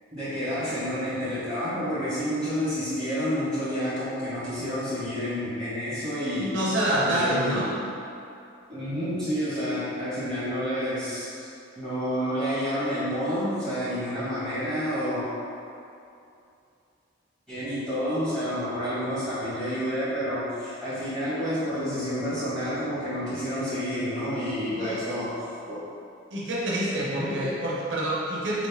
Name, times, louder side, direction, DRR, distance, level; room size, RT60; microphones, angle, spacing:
voice 1, 0.1-6.5 7.0-7.8 8.7-11.5 11.8-15.3 17.5-25.4 25.7-25.8 27.1-27.4, equal, 5° left, -14 dB, 1.4 m, -29 dB
voice 2, 6.4-7.7 24.7-25.0 26.3-28.7, right 1 dB, 65° right, -6 dB, 0.6 m, -27 dB
3.1 x 2.6 x 3.3 m, 2.6 s
head